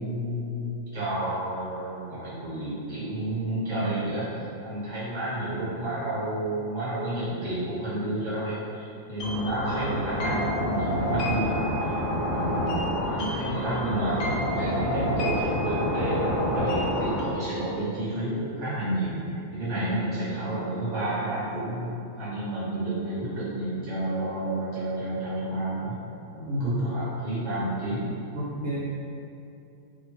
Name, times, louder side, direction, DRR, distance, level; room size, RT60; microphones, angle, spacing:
voice 1, 0.0-26.0 26.3-28.2 28.6-28.7, right 1 dB, 20° right, -12 dB, 0.9 m, -30 dB
sound 1, 9.2-17.2, equal, 70° left, 0.9 m, -28 dB
voice 2, 28.3-28.8, equal, 70° right, -8 dB, 0.7 m, -30 dB
2.6 x 2.4 x 2.8 m, 2.7 s
omnidirectional pair, 1.7 m